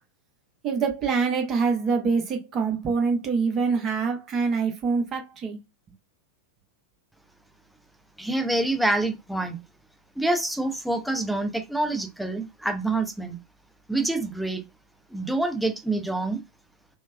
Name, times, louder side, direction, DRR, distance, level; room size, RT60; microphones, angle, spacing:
voice 1, 0.6-5.6, right 5 dB, 30° right, 0.8 m, -25 dB
voice 2, 8.2-9.6 10.2-13.4 13.9-14.6 15.1-16.4, right 2 dB, ahead, 0.5 m, -26 dB
3.2 x 2.1 x 2.2 m
figure-of-eight pair, 90°, 0 cm